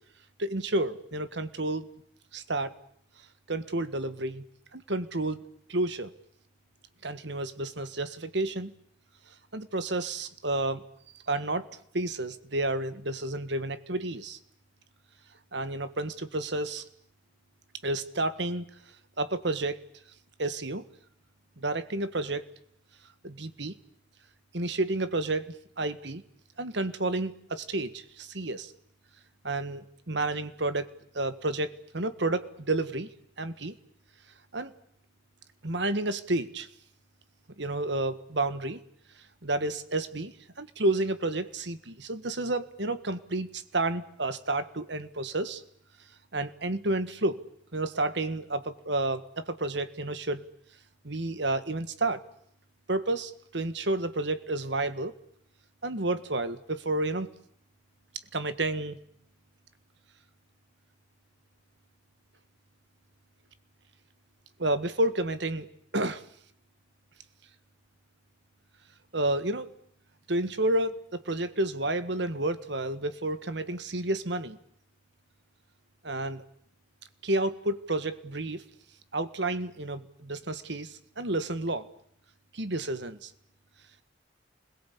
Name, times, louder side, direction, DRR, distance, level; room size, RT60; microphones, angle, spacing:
voice 1, 0.4-1.9 2.3-2.7 3.5-4.4 4.7-5.4 5.7-6.1 7.0-8.7 9.5-10.8 11.3-11.7 11.9-14.4 15.5-16.8 17.8-18.6 19.2-19.8 20.4-20.8 21.6-22.5 23.2-23.7 24.5-26.2 26.6-28.7 29.4-30.9 31.1-33.1 33.4-33.8 34.5-34.7 35.6-36.7 37.6-38.8 39.4-45.6 46.3-47.4 47.7-50.4 51.0-52.2 52.9-55.1 55.8-57.3 58.3-59.0 64.6-65.7 65.9-66.2 69.1-69.7 70.3-74.6 76.0-76.4 77.2-78.6 79.1-81.9 82.5-83.3, right 2 dB, 65° right, 12 dB, 1.6 m, -30 dB
28.5 x 21.5 x 8.5 m, 0.67 s
head